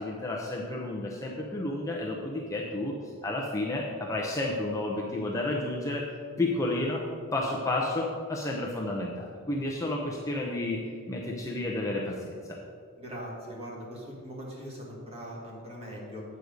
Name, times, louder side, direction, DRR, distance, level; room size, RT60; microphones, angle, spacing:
voice 1, 0.0-3.0 3.2-6.0 6.4-7.0 7.3-12.6, left 2 dB, 15° left, -2 dB, 0.7 m, -31 dB
voice 2, 13.0-16.2, equal, 25° right, -3 dB, 1.9 m, -41 dB
8.1 x 6.5 x 5.1 m, 2.1 s
head